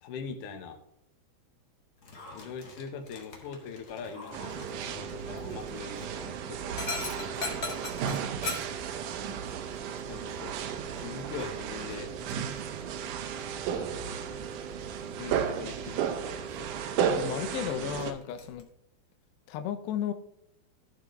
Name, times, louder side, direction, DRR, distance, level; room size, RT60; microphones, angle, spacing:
voice 1, 0.0-0.8 2.3-7.9 10.1-10.5 10.9-12.1 13.7-14.4 15.2-16.7, left 6 dB, 60° left, 5 dB, 2.5 m, -43 dB
Dog, 2.0-18.6, left 3 dB, 40° left, 1.5 m, -44 dB
sound 1, 4.3-18.1, right 8 dB, 75° right, 1.9 m, -34 dB
voice 2, 17.1-18.7 19.5-20.1, left 10 dB, 90° left, 10 dB, 3.0 m, -34 dB
15.0 x 7.1 x 3.4 m, 0.78 s
omnidirectional pair, 4.7 m